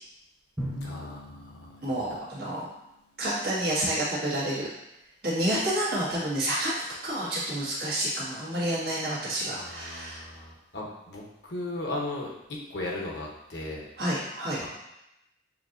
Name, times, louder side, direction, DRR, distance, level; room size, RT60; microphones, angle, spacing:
Drum, 0.6-2.7, equal, 10° right, 0.8 m, -39 dB
voice 1, 0.8-2.0 9.6-12.3 12.7-13.9 14.6-14.7, left 2 dB, 65° left, -2 dB, 1.0 m, -37 dB
voice 2, 1.8-2.7 3.2-4.7 5.2-10.3 14.0-14.6, right 1 dB, 55° right, -8 dB, 1.8 m, -29 dB
6.9 x 2.9 x 2.6 m, 0.87 s
head